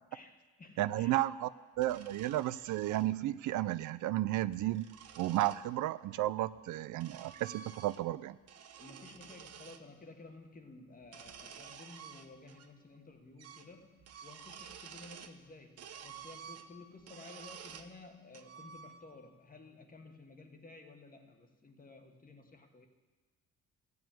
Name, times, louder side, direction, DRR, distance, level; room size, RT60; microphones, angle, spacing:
voice 1, 0.1-1.2 8.8-22.9, left 3 dB, 30° left, 5 dB, 1.5 m, -54 dB
voice 2, 0.8-1.5 1.8-4.9 5.2-8.4, right 15 dB, 75° right, 16 dB, 0.5 m, -33 dB
sound 1, 1.8-3.1 4.3-5.6 6.5-8.2 8.4-9.8 11.0-12.7 12.9-13.0 13.4-13.7 14.0-15.4 15.8-17.9 18.3-19.3, right 7 dB, 55° right, 0.8 m, -52 dB
14.0 x 4.8 x 9.1 m, 1.3 s
cardioid pair, 90°, 30 cm